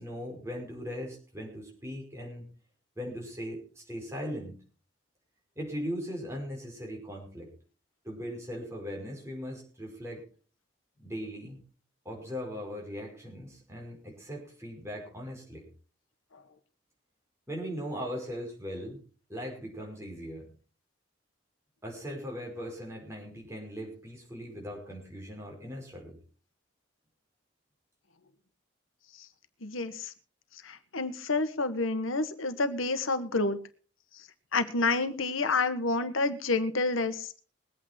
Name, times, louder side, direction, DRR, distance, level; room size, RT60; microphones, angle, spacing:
voice 1, 0.0-2.4 2.9-4.6 5.5-7.5 8.0-10.2 11.0-11.6 12.0-15.7 17.5-19.0 19.3-20.5 21.8-26.2, equal, 15° right, 0 dB, 5.2 m, -39 dB
voice 2, 29.6-30.1 30.6-33.6 34.5-37.4, left 3 dB, 90° left, 10 dB, 1.4 m, -29 dB
21.5 x 8.8 x 4.5 m, 0.39 s
head